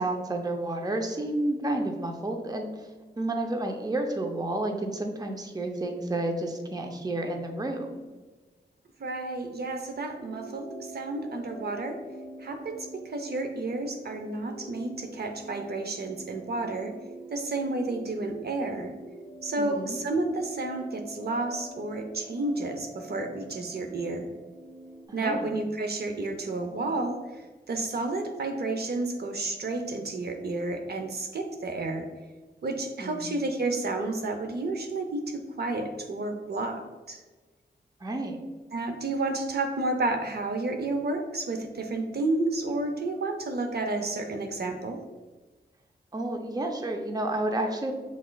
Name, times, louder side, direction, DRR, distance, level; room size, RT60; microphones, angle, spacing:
voice 1, 0.0-2.9 3.2-8.0 19.6-20.0 25.2-25.5 33.0-33.3 38.0-38.4 46.1-47.9, right 1 dB, 20° right, 3 dB, 0.6 m, -30 dB
voice 2, 9.0-12.0 12.4-16.9 17.3-18.9 19.4-24.3 25.1-32.1 32.6-36.8 37.1-37.2 38.7-45.0, right 2 dB, 60° right, 5 dB, 0.6 m, -31 dB
sound 1, 10.1-25.1, right 1 dB, 5° left, 1.5 m, -45 dB
6.1 x 3.6 x 2.3 m, 1.3 s
wide cardioid pair, 80°, 18 cm